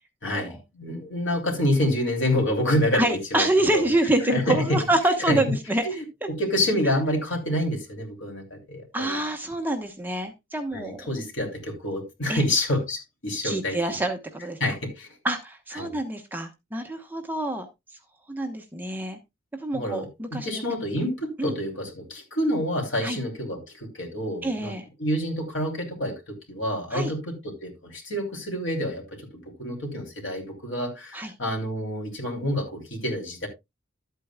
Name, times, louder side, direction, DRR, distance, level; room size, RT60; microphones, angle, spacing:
voice 1, 0.2-3.5 3.7-3.9 4.2-4.8 5.3-5.4 5.8-6.0 6.4-9.2 10.7-13.8 14.6-15.1 15.8-16.0 19.7-24.7 25.0-29.3 29.6-33.5, left 1 dB, 65° left, 3.1 m, -28 dB
voice 2, 2.9-5.8 8.9-11.1 12.3-12.4 13.4-14.6 15.2-17.7 18.3-19.2 19.6-20.6 21.4-21.5 23.0-23.2 24.4-24.8 26.9-27.1 31.1-31.3, right 1 dB, 10° right, 1.0 m, -26 dB
12.5 x 8.4 x 2.2 m
head